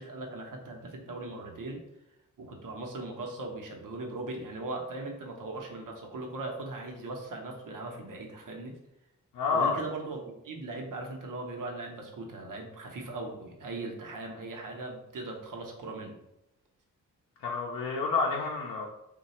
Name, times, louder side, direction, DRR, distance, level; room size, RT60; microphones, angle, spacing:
voice 1, 0.0-1.8 2.4-8.7 9.5-16.2, right 2 dB, 70° right, 1 dB, 0.8 m, -39 dB
voice 2, 9.3-9.8 17.4-18.8, left 4 dB, 90° left, -2 dB, 0.5 m, -29 dB
3.1 x 2.2 x 4.1 m, 0.87 s
wide cardioid pair, 95°, 33 cm